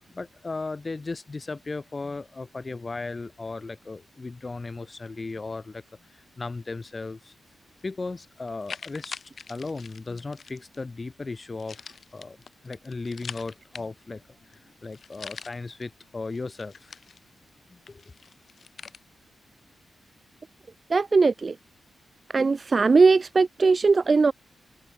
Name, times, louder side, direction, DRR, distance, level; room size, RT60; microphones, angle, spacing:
voice 1, 0.1-5.8 6.1-7.3 7.8-9.2 9.5-12.4 12.6-16.9 17.7-18.0, left 3 dB, 30° left, 2.5 m, -36 dB
sound 1, 7.8-7.9 8.4-10.8 11.6-14.2 14.5-14.6 14.8-15.8 16.3-17.5 17.9-19.0, left 6 dB, 50° left, 6.2 m, -43 dB
voice 2, 20.9-21.6 22.3-24.3, right 4 dB, 35° right, 0.4 m, -19 dB
wide cardioid pair, 130°, 0 cm